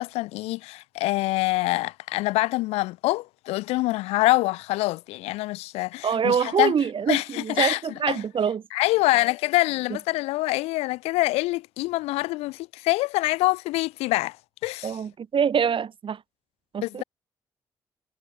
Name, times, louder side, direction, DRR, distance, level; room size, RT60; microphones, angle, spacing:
voice 1, 0.0-6.7 7.1-7.8 8.1-8.2 8.7-14.4 14.6-14.9 16.8-17.0, left 20 dB, 85° left, 0.6 m, -25 dB
voice 2, 6.0-8.6 14.8-16.2 16.7-17.0, right 7 dB, 55° right, 1.1 m, -25 dB
hypercardioid pair, 45°, 10 cm